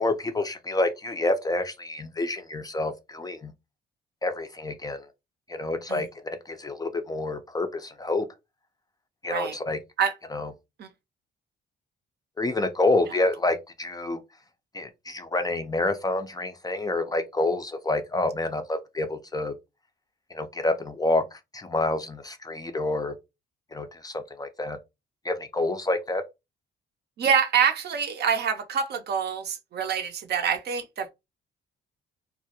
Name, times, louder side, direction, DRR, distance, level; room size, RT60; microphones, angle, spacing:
voice 1, 0.0-3.5 4.2-5.0 5.5-8.3 9.2-9.8 10.3-10.5 12.4-14.2 14.7-19.5 20.3-23.1 23.7-24.8 25.2-26.2, left 2 dB, 20° left, 0.4 m, -28 dB
voice 2, 27.2-31.1, right 7 dB, 55° right, 0.5 m, -26 dB
2.3 x 2.0 x 2.8 m
cardioid pair, 90°, 20 cm